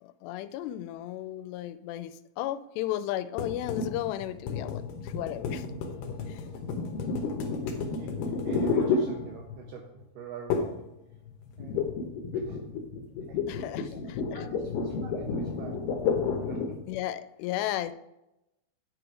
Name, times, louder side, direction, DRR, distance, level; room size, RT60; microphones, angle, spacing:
voice 1, 0.0-5.6 6.3-6.4 13.5-14.4 16.9-17.9, left 13 dB, 90° left, 12 dB, 2.7 m, -34 dB
sound 1, 3.4-9.7 10.5-10.9 11.1-16.8, left 4 dB, 70° left, 2.2 m, -31 dB
voice 2, 7.5-10.7 11.6-11.8 12.3-12.8 13.2-15.9 16.4-16.8, right 6 dB, 85° right, 2 dB, 1.8 m, -45 dB
9.3 x 5.0 x 4.8 m, 0.89 s
omnidirectional pair, 4.8 m